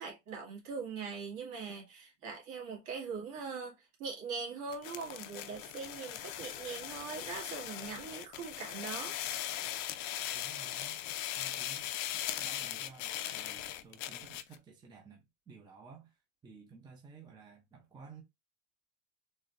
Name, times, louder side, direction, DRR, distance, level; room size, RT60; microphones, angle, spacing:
voice 1, 0.0-9.2, right 5 dB, 55° right, 2.1 m, -41 dB
sound 1, 4.7-14.6, left 12 dB, 50° left, 0.5 m, -39 dB
voice 2, 10.3-11.0 11.4-18.2, right 4 dB, 10° right, 0.5 m, -54 dB
4.1 x 3.0 x 2.5 m
cardioid pair, 155°, 38 cm